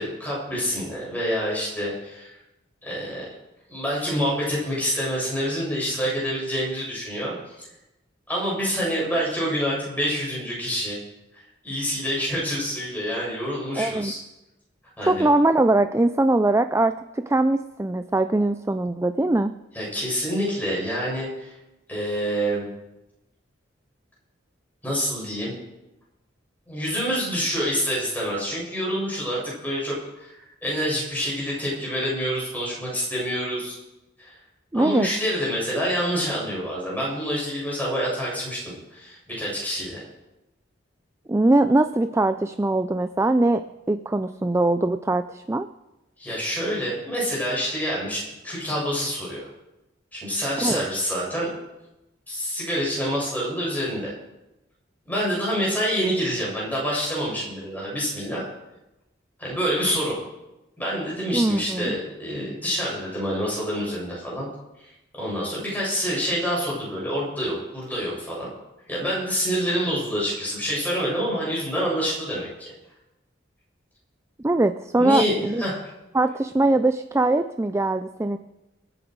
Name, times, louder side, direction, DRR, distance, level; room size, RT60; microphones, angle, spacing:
voice 1, 0.0-2.4 2.8-3.3 3.7-7.7 8.3-11.0 11.3-14.2 15.0-15.3 19.7-21.5 21.9-22.7 24.8-25.5 26.7-33.8 34.2-34.4 34.7-40.1 46.2-49.5 50.1-51.5 52.3-54.1 55.1-58.5 59.4-60.2 60.8-64.5 64.8-68.5 68.9-72.7 74.9-75.8, equal, 10° left, -5 dB, 6.9 m, -27 dB
voice 2, 13.8-14.1 15.0-19.5 34.7-35.1 41.3-43.6 43.9-45.7 50.6-50.9 61.3-62.0 74.4-75.6 76.1-78.4, right 2 dB, 15° right, 10 dB, 0.4 m, -21 dB
26.0 x 8.9 x 4.7 m, 0.97 s
head